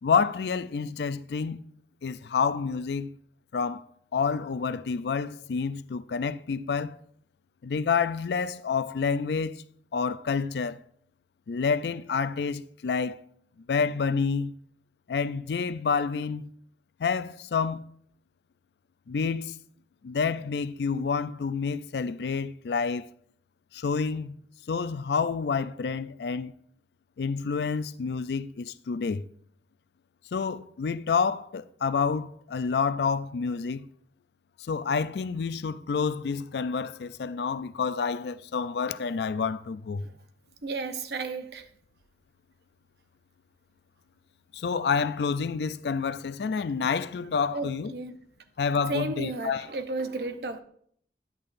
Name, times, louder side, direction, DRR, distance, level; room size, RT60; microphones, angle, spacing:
voice 1, 0.0-1.6 2.0-3.1 3.5-3.8 4.1-7.0 7.6-9.6 9.9-10.8 11.5-13.2 13.7-14.5 15.1-16.5 17.0-17.8 19.1-19.5 20.0-23.1 23.7-24.3 24.7-26.5 27.2-29.2 30.3-33.9 34.6-40.1 44.5-47.9 48.6-49.7, left 5 dB, 75° left, 0.4 m, -28 dB
voice 2, 40.6-41.7 47.5-48.2 48.9-50.6, right 2 dB, 70° right, 0.7 m, -33 dB
10.5 x 8.5 x 2.5 m
head